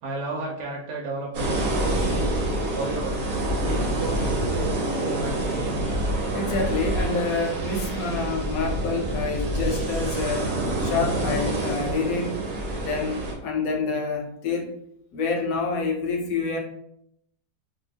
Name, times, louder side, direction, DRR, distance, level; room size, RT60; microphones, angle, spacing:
voice 1, 0.0-2.3 2.7-3.2 3.6-5.9, right 3 dB, 85° right, -2 dB, 1.2 m, -34 dB
sound 1, 1.3-13.3, right 1 dB, 60° right, 1.1 m, -27 dB
voice 2, 6.3-10.5 10.8-12.5 12.8-14.7 15.1-16.6, left 3 dB, 70° left, 1 dB, 0.9 m, -27 dB
2.7 x 2.2 x 3.3 m, 0.75 s
omnidirectional pair, 1.7 m